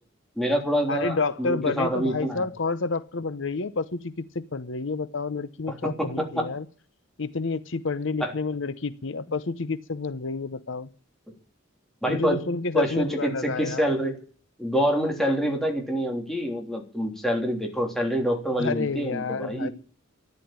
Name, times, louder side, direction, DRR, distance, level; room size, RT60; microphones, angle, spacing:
voice 1, 0.4-2.4 5.8-6.5 8.2-8.3 12.0-12.4 12.7-14.2 14.6-19.7, equal, ahead, 1 dB, 3.3 m, -26 dB
voice 2, 0.9-6.6 7.2-10.9 12.1-13.9 18.6-19.7, left 4 dB, 65° left, 14 dB, 0.8 m, -29 dB
14.0 x 11.0 x 8.8 m, 0.40 s
head